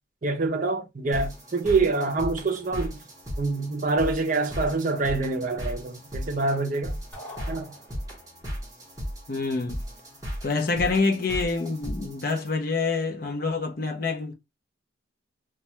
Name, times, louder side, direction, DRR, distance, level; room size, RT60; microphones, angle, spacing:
voice 1, 0.2-3.0 3.4-7.0 7.5-7.7, right 3 dB, 40° right, 0.5 m, -26 dB
sound 1, 1.1-12.5, equal, 20° right, 0.8 m, -36 dB
sound 2, 7.1-8.4, left 1 dB, 10° left, 0.9 m, -44 dB
voice 2, 9.3-9.8 10.4-14.3, left 3 dB, 45° left, 0.5 m, -26 dB
2.2 x 2.2 x 2.8 m
head